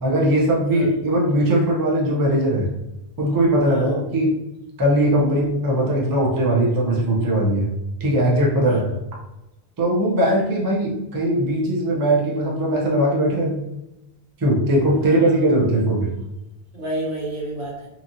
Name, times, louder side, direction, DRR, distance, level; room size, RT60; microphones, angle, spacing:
voice 1, 0.0-2.7 3.2-4.4 4.8-7.7 8.0-8.9 9.8-13.6 14.4-16.1, right 1 dB, 25° right, -3 dB, 0.5 m, -20 dB
voice 2, 15.0-15.3 16.7-17.9, right 1 dB, 75° right, -6 dB, 1.4 m, -30 dB
3.0 x 2.4 x 2.6 m, 0.90 s
omnidirectional pair, 1.1 m